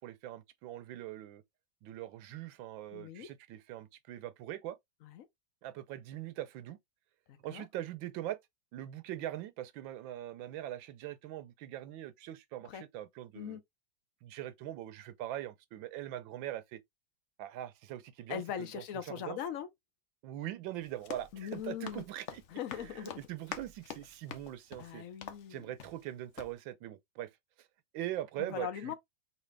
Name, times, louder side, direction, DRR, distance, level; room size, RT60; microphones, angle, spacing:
voice 1, 0.0-1.4 1.8-4.8 5.6-6.8 7.4-8.4 8.7-13.6 14.2-16.8 17.4-19.4 20.2-22.4 22.7-25.0 25.5-27.3 27.9-28.9, right 13 dB, 75° right, 1.4 m, -42 dB
voice 2, 2.9-3.3 5.0-5.3 7.3-7.7 12.6-12.8 13.3-13.6 18.3-19.7 21.3-22.0 22.5-23.2 24.8-25.6 28.4-28.9, left 9 dB, 55° left, 1.0 m, -40 dB
Run, 20.8-26.1 26.4-26.5, left 8 dB, 90° left, 0.6 m, -47 dB
4.1 x 2.8 x 3.3 m
omnidirectional pair, 2.2 m